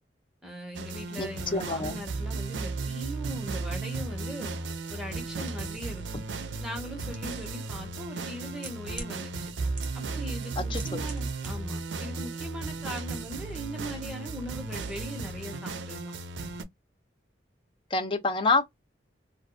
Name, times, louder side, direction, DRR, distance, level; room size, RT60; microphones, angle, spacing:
voice 1, 0.4-4.5 4.9-6.0 6.6-9.5 9.9-16.1, equal, 5° right, 1.0 m, -40 dB
sound 1, 0.7-16.6, right 3 dB, 75° right, 0.4 m, -35 dB
voice 2, 1.2-2.0 10.6-11.0 17.9-18.6, left 3 dB, 30° left, 0.5 m, -27 dB
sound 2, 7.1-7.2 8.2-9.1 9.8-10.2 10.4-11.5 11.7-11.8, right 3 dB, 45° right, 1.1 m, -41 dB
2.6 x 2.3 x 2.3 m
head